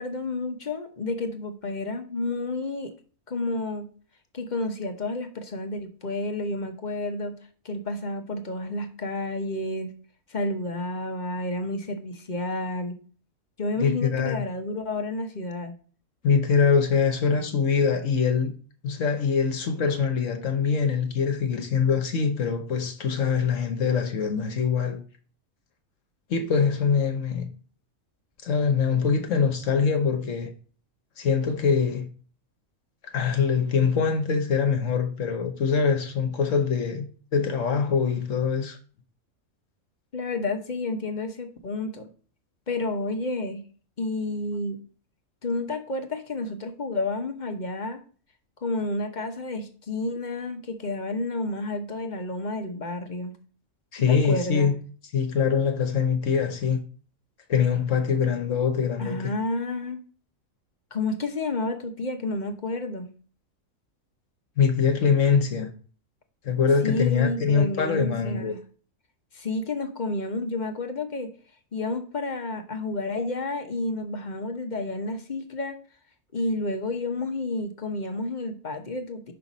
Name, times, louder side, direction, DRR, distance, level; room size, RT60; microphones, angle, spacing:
voice 1, 0.0-2.9 3.3-3.9 4.3-7.4 7.6-9.9 10.3-12.9 13.6-15.7 40.1-42.1 42.7-43.6 44.0-44.8 45.4-48.0 48.6-53.3 54.1-54.7 59.0-60.0 60.9-63.1 66.8-68.6 69.3-71.3 71.7-75.8 76.3-79.3, left 2 dB, 40° left, 0.9 m, -30 dB
voice 2, 13.8-14.4 16.2-18.5 18.8-25.0 26.3-27.5 28.4-30.5 31.2-32.1 33.0-37.1 37.3-38.8 53.9-54.7 55.1-56.8 57.5-59.2 64.6-65.7 66.4-68.5, left 6 dB, 65° left, 1.3 m, -23 dB
5.7 x 5.7 x 4.0 m
omnidirectional pair, 1.4 m